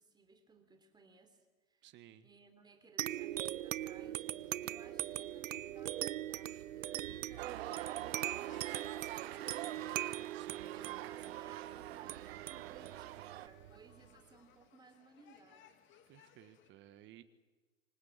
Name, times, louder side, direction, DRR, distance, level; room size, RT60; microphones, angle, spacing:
voice 1, 0.0-1.9 2.2-15.7, right 3 dB, 10° right, 7 dB, 3.4 m, -62 dB
voice 2, 1.8-2.3 10.3-10.7 16.1-17.2, right 12 dB, 30° right, 13 dB, 1.5 m, -57 dB
sound 1, 3.0-14.1, right 13 dB, 70° right, 0.8 m, -41 dB
sound 2, 4.4-16.7, left 9 dB, 30° left, 2.6 m, -65 dB
sound 3, 7.4-13.5, right 15 dB, 50° right, 1.1 m, -45 dB
26.0 x 19.5 x 8.5 m, 1.3 s
hypercardioid pair, 125°, 40 cm